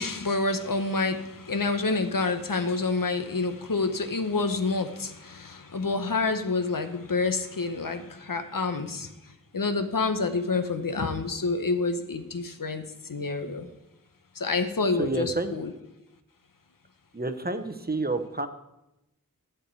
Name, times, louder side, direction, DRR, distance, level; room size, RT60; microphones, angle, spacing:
voice 1, 0.0-9.1 9.5-12.8 13.1-13.7 14.4-15.7, left 3 dB, 70° left, 8 dB, 1.0 m, -28 dB
voice 2, 15.0-15.5 17.1-18.5, right 2 dB, 25° right, 9 dB, 0.8 m, -29 dB
11.0 x 4.6 x 8.2 m, 0.91 s
wide cardioid pair, 50°, 34 cm